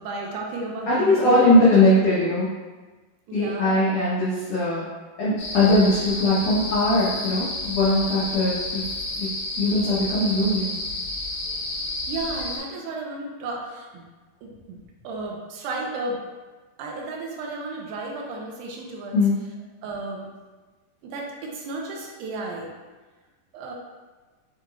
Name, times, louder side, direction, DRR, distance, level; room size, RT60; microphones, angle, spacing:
voice 1, 0.0-1.6 3.3-3.9 12.1-14.1 14.4-14.8 15.0-16.2 16.8-19.2 19.8-20.3 21.0-22.7 23.5-23.7, right 2 dB, 80° right, -1 dB, 2.0 m, -33 dB
voice 2, 0.9-2.5 3.3-4.8 5.2-8.8 9.1-9.3 9.6-10.8 19.1-19.4, left 1 dB, 90° left, -9 dB, 1.3 m, -20 dB
sound 1, 5.4-12.6, left 2 dB, 70° left, 2.1 m, -31 dB
5.9 x 3.0 x 2.3 m, 1.3 s
omnidirectional pair, 3.9 m